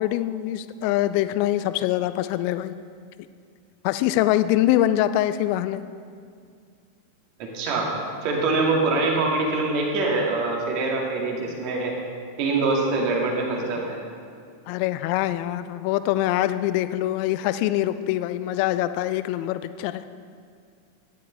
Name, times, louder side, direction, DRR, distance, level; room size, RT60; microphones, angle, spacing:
voice 1, 0.0-2.8 3.8-5.8 14.7-20.0, left 13 dB, 45° left, 13 dB, 0.5 m, -24 dB
voice 2, 7.4-7.9 8.2-11.9 12.4-14.0, right 3 dB, 45° right, -1 dB, 2.2 m, -24 dB
13.0 x 10.5 x 3.5 m, 2.2 s
figure-of-eight pair, 90°, 0 cm